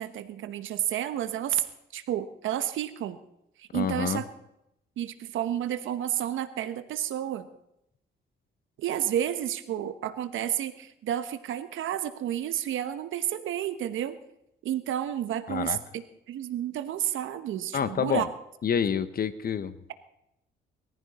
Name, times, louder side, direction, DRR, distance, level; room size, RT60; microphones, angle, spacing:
voice 1, 0.0-1.6 1.9-3.2 3.6-4.2 5.0-7.5 8.8-14.2 14.6-18.3, right 11 dB, 80° right, 10 dB, 1.2 m, -31 dB
voice 2, 3.7-4.2 15.5-15.8 17.7-18.3 18.6-19.8, left 7 dB, 50° left, 13 dB, 1.1 m, -28 dB
21.0 x 14.5 x 4.3 m, 0.83 s
cardioid pair, 90°, 20 cm